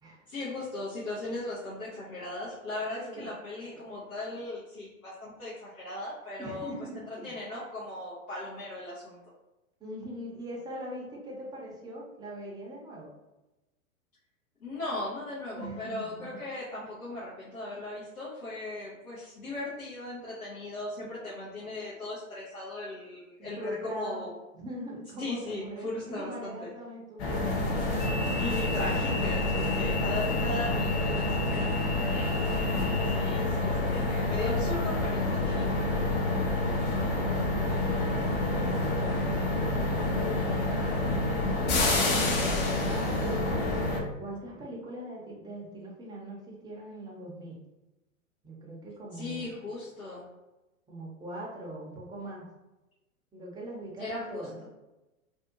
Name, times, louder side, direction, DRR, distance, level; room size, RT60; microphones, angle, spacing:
voice 1, 0.3-9.2 14.6-24.4 25.2-26.7 28.3-32.9 33.2-35.8 49.1-50.3 54.0-54.7, left 2 dB, 85° left, -8 dB, 1.0 m, -38 dB
voice 2, 6.4-7.3 9.8-13.1 15.5-16.4 23.6-24.2 24.5-27.8 35.7-36.0 37.2-41.5 42.0-43.8 44.2-47.6 48.4-49.6 50.9-52.5 53.3-54.6, right 1 dB, 10° right, -3 dB, 0.6 m, -41 dB
sound 1, 27.2-44.0, left 2 dB, 35° left, 0.6 m, -28 dB
2.6 x 2.3 x 2.6 m, 1.0 s
hypercardioid pair, 105°, 42 cm